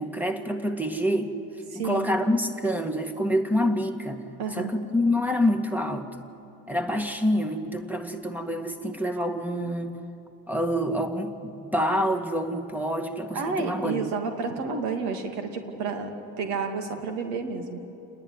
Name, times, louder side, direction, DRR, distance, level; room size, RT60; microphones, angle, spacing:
voice 1, 0.0-1.4 1.8-4.2 4.5-6.3 6.7-10.0 10.5-14.0, equal, 5° right, 5 dB, 1.9 m, -27 dB
voice 2, 1.7-2.1 4.4-4.7 13.3-17.8, right 5 dB, 80° right, 5 dB, 2.6 m, -30 dB
29.0 x 10.5 x 9.6 m, 3.0 s
hypercardioid pair, 75°, 45 cm